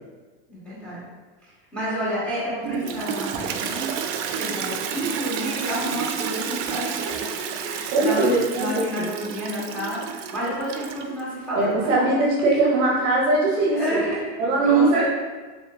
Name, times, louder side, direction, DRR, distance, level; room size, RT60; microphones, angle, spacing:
voice 1, 0.5-1.0 1.4-3.9 4.4-12.1 13.6-14.2 14.6-15.1, equal, 5° left, -9 dB, 1.2 m, -30 dB
Toilet flush, 2.6-11.2, right 7 dB, 85° right, 0.5 m, -31 dB
voice 2, 7.9-9.1 11.5-14.0 14.4-15.1, right 2 dB, 50° right, -3 dB, 0.7 m, -21 dB
4.2 x 3.3 x 2.4 m, 1.3 s
supercardioid pair, 165°, 36 cm